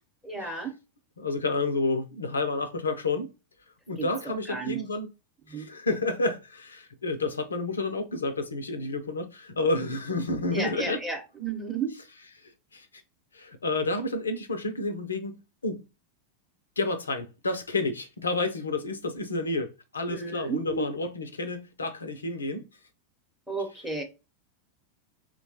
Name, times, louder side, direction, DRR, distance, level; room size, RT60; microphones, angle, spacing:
voice 1, 0.2-0.8 4.0-4.8 5.5-5.7 10.5-12.0 20.1-20.8 23.5-24.0, right 4 dB, 5° right, 0.9 m, -33 dB
voice 2, 1.2-3.3 3.9-5.1 5.5-11.0 12.4-12.9 13.3-15.8 16.8-22.7, left 2 dB, 75° left, 0.5 m, -30 dB
4.3 x 2.2 x 2.8 m
figure-of-eight pair, 90°, 0 cm